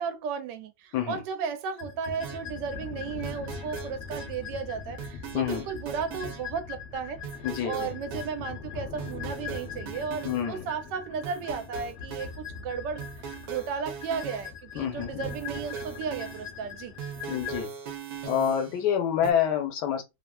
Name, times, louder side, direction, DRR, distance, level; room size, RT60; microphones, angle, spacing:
voice 1, 0.0-7.2 7.6-16.9, right 6 dB, 90° right, 1.2 m, -34 dB
sound 1, 1.8-17.6, left 6 dB, 60° left, 0.7 m, -41 dB
sound 2, 2.2-2.4 3.2-4.3 5.0-6.4 7.2-8.3 9.0-10.4 11.2-12.3 13.0-14.5 15.2-16.5 17.0-18.9 19.2-19.3, right 7 dB, 70° right, 1.1 m, -40 dB
voice 2, 5.3-5.7 7.4-7.9 10.2-10.7 14.7-15.3 17.3-17.7 18.2-20.0, left 9 dB, 75° left, 1.3 m, -27 dB
3.0 x 2.4 x 2.2 m
omnidirectional pair, 1.8 m